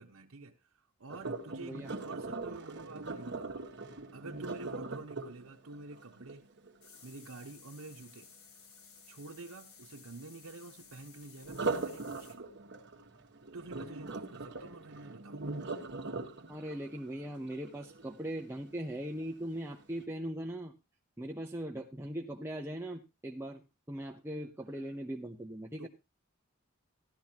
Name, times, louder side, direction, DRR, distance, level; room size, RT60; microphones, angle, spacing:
voice 1, 0.0-3.6 4.1-6.5 7.0-8.3 9.1-12.4 13.5-15.6 25.8-25.9, right 3 dB, 80° right, 1.0 m, -49 dB
Sink (filling or washing), 1.1-7.1 11.4-18.5 19.0-19.3 19.8-19.9, right 3 dB, 55° right, 1.4 m, -40 dB
voice 2, 1.6-2.0 16.5-20.7 21.2-23.6 23.9-25.9, right 1 dB, 10° right, 0.8 m, -40 dB
sound 1, 6.8-12.4, left 6 dB, 85° left, 1.9 m, -57 dB
15.5 x 12.0 x 2.9 m
head